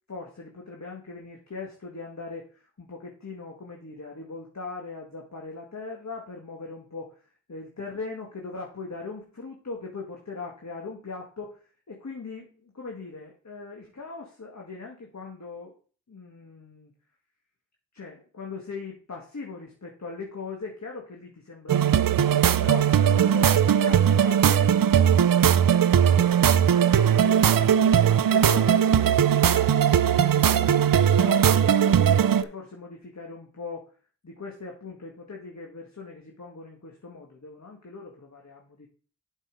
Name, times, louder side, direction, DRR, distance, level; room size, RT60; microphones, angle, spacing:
voice 1, 0.1-15.7 16.1-16.9 17.9-34.0 34.2-38.9, left 4 dB, 50° left, 0 dB, 1.9 m, -40 dB
sound 1, 21.7-32.4, right 9 dB, 70° right, 0.6 m, -19 dB
7.9 x 5.5 x 5.2 m, 0.40 s
cardioid pair, 45°, 35 cm